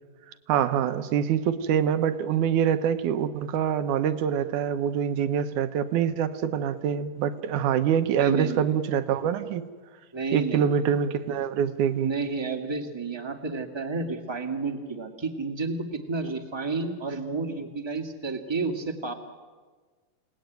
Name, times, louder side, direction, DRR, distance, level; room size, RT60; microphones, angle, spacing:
voice 1, 0.5-9.6 10.3-12.1, right 8 dB, 70° right, 10 dB, 2.4 m, -25 dB
voice 2, 8.2-8.6 10.1-10.6 12.0-19.1, right 4 dB, 15° right, 4 dB, 1.2 m, -31 dB
29.0 x 18.5 x 9.4 m, 1.5 s
omnidirectional pair, 3.9 m